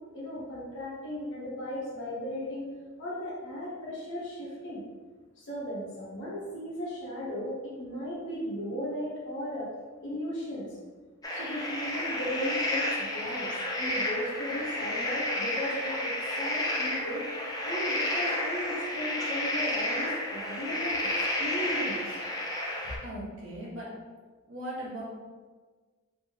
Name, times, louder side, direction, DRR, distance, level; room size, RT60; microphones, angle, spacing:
voice 1, 0.1-2.7 3.0-4.8 5.4-9.7 10.0-10.7 11.3-21.0 21.4-22.2, equal, 60° left, -6 dB, 1.1 m, -36 dB
sound 1, 11.2-23.0, left 1 dB, 15° left, 0.6 m, -31 dB
voice 2, 23.0-23.9 24.5-25.0, right 1 dB, 65° right, -6 dB, 1.2 m, -38 dB
3.4 x 3.1 x 2.9 m, 1.4 s
head